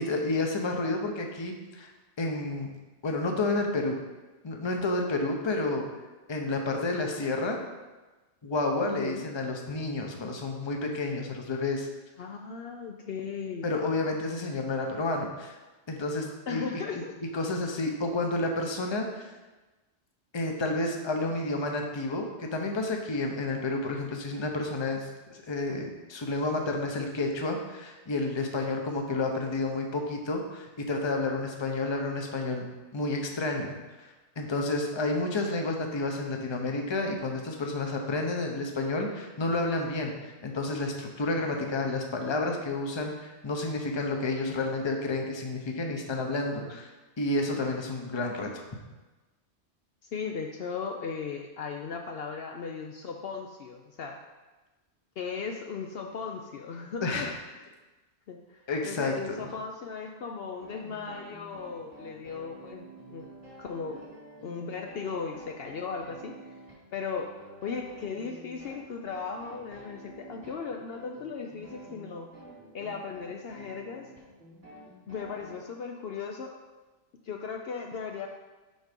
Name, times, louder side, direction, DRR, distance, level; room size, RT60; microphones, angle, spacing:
voice 1, 0.0-1.9 2.2-2.7 3.0-4.0 4.4-5.8 6.3-7.6 8.4-11.9 13.6-15.5 15.9-16.6 17.3-19.3 20.3-32.7 32.9-33.7 34.0-34.1 34.4-46.9 47.2-48.6 57.0-57.3 58.7-59.5, left 2 dB, 25° left, 2 dB, 0.7 m, -30 dB
voice 2, 8.8-9.3 12.2-13.9 16.5-17.2 50.0-54.2 55.2-57.3 57.6-57.7 58.3-63.3 63.6-64.0 64.4-66.3 66.9-67.3 67.6-72.3 72.7-74.1 75.1-76.6 77.2-78.3, left 5 dB, 65° left, 2 dB, 0.8 m, -37 dB
sound 1, 60.6-75.6, right 2 dB, 90° right, 2.9 m, -49 dB
6.4 x 4.7 x 5.2 m, 1.2 s
omnidirectional pair, 1.2 m